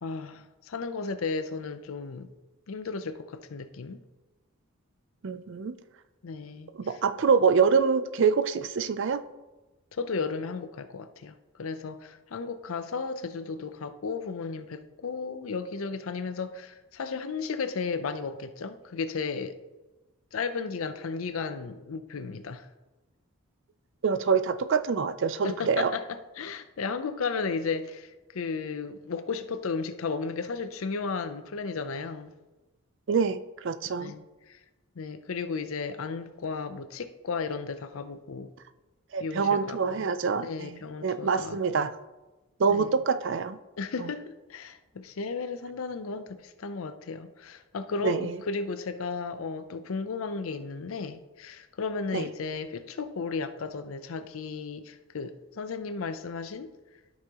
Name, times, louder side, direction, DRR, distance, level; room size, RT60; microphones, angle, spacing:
voice 1, 0.0-2.3 2.7-4.0 6.2-7.0 9.9-19.6 20.3-22.7 25.4-32.3 33.9-34.6 35.0-38.5 39.2-40.1 40.4-41.9 42.7-43.0 43.8-56.7, left 4 dB, 75° left, 0.5 m, -34 dB
voice 2, 5.2-5.8 6.8-9.2 24.0-25.9 33.1-34.1 39.1-41.9 42.6-43.6 44.0-44.1 48.0-48.4 52.1-52.3, right 5 dB, 60° right, 0.4 m, -26 dB
12.5 x 5.7 x 2.9 m
head